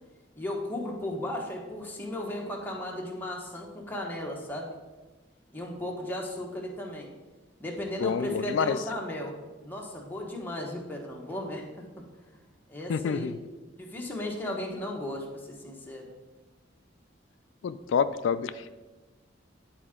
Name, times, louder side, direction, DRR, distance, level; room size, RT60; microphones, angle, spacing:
voice 1, 0.4-4.8 5.5-7.1 7.6-9.3 9.6-12.0 12.7-13.3 13.8-16.1, left 1 dB, 10° left, -1 dB, 1.1 m, -35 dB
voice 2, 8.0-8.8 12.9-13.3 17.6-18.8, left 6 dB, 80° left, 13 dB, 0.3 m, -28 dB
10.0 x 4.4 x 3.7 m, 1.2 s
head